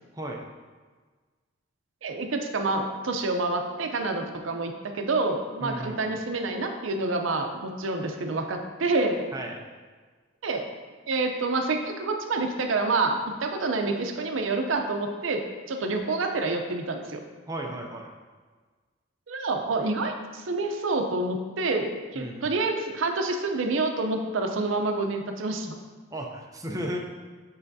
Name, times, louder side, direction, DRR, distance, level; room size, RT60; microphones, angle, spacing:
voice 1, 2.0-9.3 10.4-10.7 11.1-17.2 19.3-25.8, right 3 dB, 80° right, 5 dB, 0.6 m, -28 dB
voice 2, 5.6-6.1 9.3-9.6 17.5-18.1 22.2-22.5 26.1-27.0, right 1 dB, 20° right, 0 dB, 0.5 m, -34 dB
6.4 x 5.6 x 2.7 m, 1.4 s
head